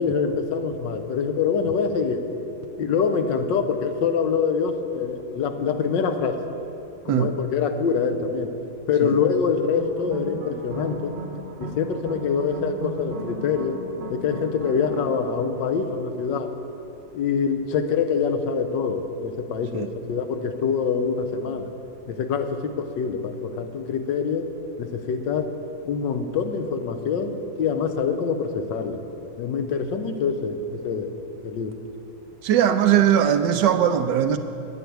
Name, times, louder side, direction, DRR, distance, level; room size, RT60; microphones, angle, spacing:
voice 1, 0.0-2.2 2.8-6.4 7.0-8.6 8.9-11.1 11.6-13.8 14.1-16.5 17.1-21.7 22.1-24.5 24.8-25.5 25.8-29.0 29.4-31.1 31.4-31.8, left 6 dB, 75° left, 7 dB, 1.4 m, -25 dB
sound 1, 9.7-16.3, right 2 dB, 50° right, 1.1 m, -37 dB
voice 2, 32.4-34.4, right 9 dB, 75° right, 8 dB, 1.1 m, -19 dB
9.4 x 8.1 x 9.2 m, 2.8 s
omnidirectional pair, 2.1 m